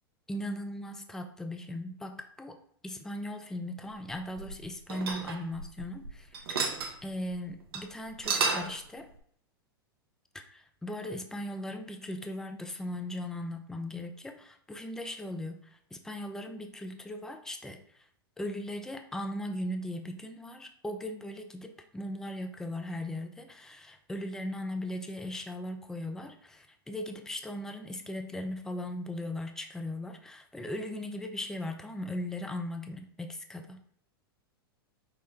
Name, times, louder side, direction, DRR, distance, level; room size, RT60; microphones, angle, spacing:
voice 1, 0.3-6.6 7.0-9.1 10.3-18.0 18.4-33.8, left 1 dB, 5° left, 6 dB, 0.4 m, -38 dB
sound 1, 4.1-6.1 6.3-6.9 7.3-7.4 7.7-7.8 8.1-8.8, right 4 dB, 75° right, 0.7 m, -31 dB
5.5 x 2.1 x 3.4 m, 0.64 s
hypercardioid pair, 100°, 13 cm